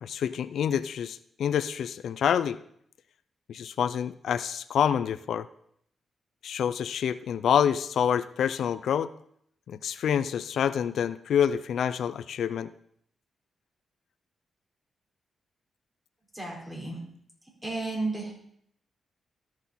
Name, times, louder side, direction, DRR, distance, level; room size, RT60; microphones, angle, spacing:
voice 1, 0.0-2.6 3.5-5.5 6.4-9.1 9.7-12.7, left 8 dB, 80° left, 14 dB, 0.3 m, -27 dB
voice 2, 16.3-17.0 17.6-18.3, right 2 dB, 15° right, -3 dB, 4.4 m, -32 dB
14.0 x 6.1 x 4.2 m, 0.70 s
cardioid pair, 85°, 0 cm